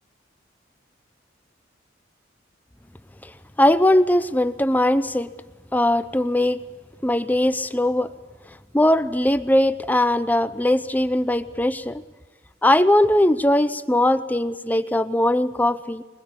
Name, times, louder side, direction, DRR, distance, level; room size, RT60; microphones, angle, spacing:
voice 1, 3.6-5.3 5.7-6.6 7.0-8.1 8.7-12.0 12.6-16.0, left 1 dB, 10° left, 12 dB, 0.7 m, -20 dB
23.0 x 21.5 x 8.6 m, 1.3 s
head